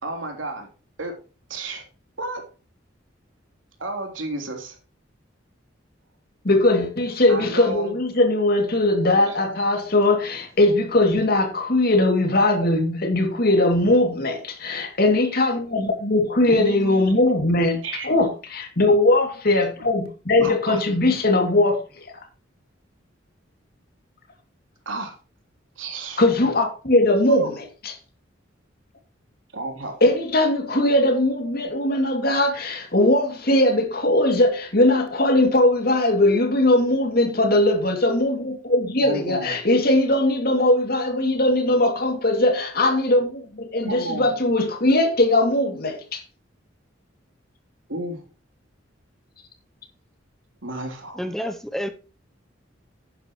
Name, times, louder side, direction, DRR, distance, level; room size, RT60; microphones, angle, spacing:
voice 1, 0.0-0.7 1.0-1.1 1.5-1.8 2.2-2.4 3.8-4.8 7.3-8.0 9.1-9.4 16.5-17.1 17.8-18.1 20.4-21.0 24.9-25.1 25.8-26.2 27.3-27.5 29.5-30.1 39.0-39.5 43.8-44.3 47.9-48.2 50.6-51.2, right 2 dB, 85° right, 3.4 m, -31 dB
voice 2, 6.4-22.2 26.2-27.6 30.0-46.2, left 1 dB, 50° left, 2.6 m, -20 dB
voice 3, 51.1-51.9, equal, ahead, 0.8 m, -29 dB
11.5 x 9.7 x 3.1 m
head